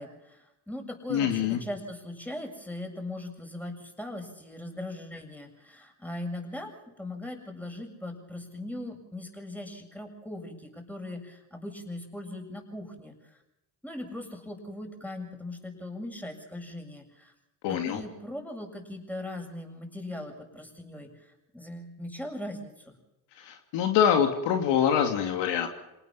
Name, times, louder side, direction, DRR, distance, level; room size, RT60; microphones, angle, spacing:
voice 1, 0.0-13.3 13.8-17.3 17.7-23.0, left 1 dB, 5° left, 3 dB, 7.4 m, -39 dB
voice 2, 1.1-1.6 17.6-18.0 23.4-25.7, left 8 dB, 70° left, 5 dB, 2.9 m, -25 dB
27.5 x 19.5 x 5.8 m, 0.93 s
hypercardioid pair, 70°, 44 cm